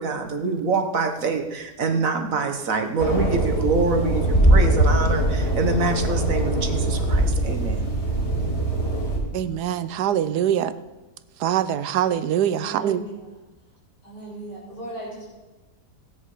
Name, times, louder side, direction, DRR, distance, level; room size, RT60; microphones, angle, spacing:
voice 1, 0.0-7.8, right 4 dB, 55° right, 6 dB, 1.6 m, -25 dB
sound 1, 3.0-9.2, right 1 dB, 45° left, 4.8 m, -21 dB
voice 2, 9.3-10.7 11.4-13.0, right 10 dB, 75° right, 14 dB, 1.2 m, -23 dB
voice 3, 12.6-13.3 14.0-15.3, right 1 dB, 85° left, -5 dB, 6.1 m, -37 dB
16.0 x 9.8 x 4.9 m, 1.1 s
omnidirectional pair, 1.8 m